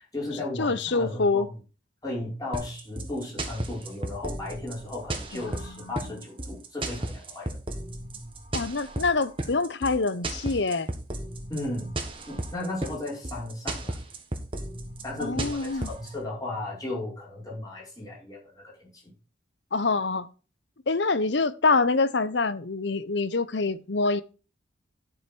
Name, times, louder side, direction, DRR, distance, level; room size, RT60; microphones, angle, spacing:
voice 1, 0.0-1.5 2.0-7.6 11.5-11.9 12.3-14.0 15.0-19.0, left 2 dB, 20° left, 5.5 m, -35 dB
voice 2, 0.6-1.5 5.4-5.9 8.5-10.9 15.2-15.9 19.7-20.3 20.9-24.2, left 3 dB, 70° left, 0.8 m, -25 dB
sound 1, 2.5-16.1, right 1 dB, 30° right, 1.8 m, -34 dB
11.0 x 6.3 x 4.6 m
head